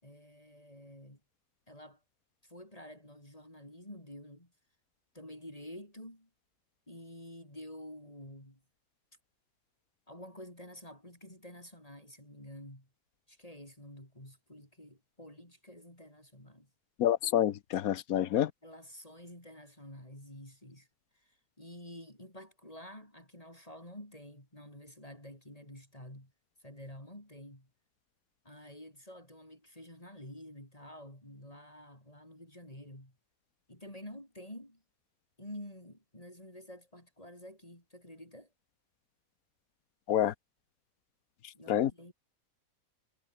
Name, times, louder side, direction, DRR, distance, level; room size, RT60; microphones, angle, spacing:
voice 1, 0.0-1.2 1.7-2.0 2.4-4.5 5.1-6.3 6.9-8.6 10.1-12.9 13.3-16.7 18.6-20.9 21.1-26.3 26.6-27.7 28.4-33.2 33.7-34.8 35.4-38.5 41.5-42.1, left 1 dB, 25° left, 6.3 m, -49 dB
voice 2, 17.0-18.5 40.1-40.3 41.7-41.9, left 11 dB, 90° left, 1.3 m, -27 dB
omnidirectional pair, 1.5 m